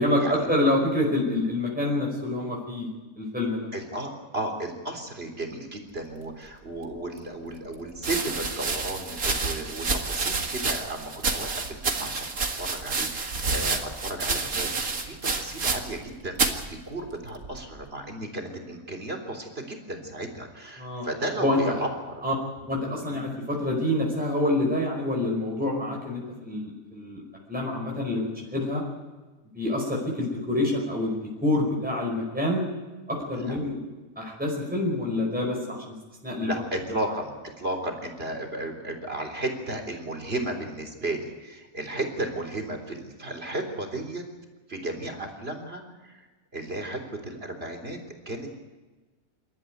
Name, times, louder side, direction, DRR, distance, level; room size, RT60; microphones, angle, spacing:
voice 1, 0.0-2.9 3.2-3.7 20.8-21.1 21.4-21.7 22.2-22.3 22.6-27.2 27.5-28.8 29.5-31.2 31.4-32.6 33.1-33.8 34.2-36.0 36.2-36.5, left 1 dB, 5° right, -2 dB, 5.2 m, -27 dB
voice 2, 3.7-12.3 12.6-22.3 22.9-23.0 33.3-33.6 36.4-44.2 44.7-46.3 46.5-48.0 48.3-48.6, right 1 dB, 45° right, 3 dB, 3.9 m, -34 dB
sound 1, 6.9-7.0 8.0-16.1 16.3-16.7 17.4-17.8, right 4 dB, 80° right, 2.4 m, -29 dB
27.5 x 13.5 x 9.4 m, 1.2 s
omnidirectional pair, 1.5 m